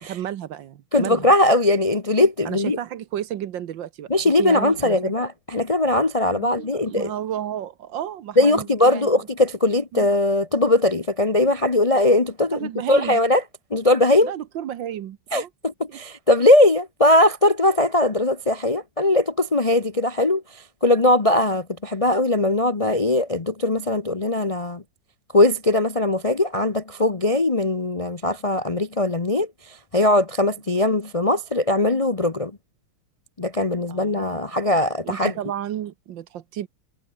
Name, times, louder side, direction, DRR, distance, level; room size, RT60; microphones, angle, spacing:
voice 1, 0.0-1.3 2.4-5.2 6.3-9.1 9.9-10.1 12.5-13.2 14.2-15.5 15.9-16.0 33.9-34.5 35.0-36.7, right 10 dB, 65° right, 1.6 m, -32 dB
voice 2, 0.9-2.8 4.1-7.1 8.4-13.4 13.7-14.3 15.3-20.4 20.8-24.8 25.3-32.5 33.4-35.3, left 2 dB, 30° left, 0.6 m, -20 dB
omnidirectional pair, 2.3 m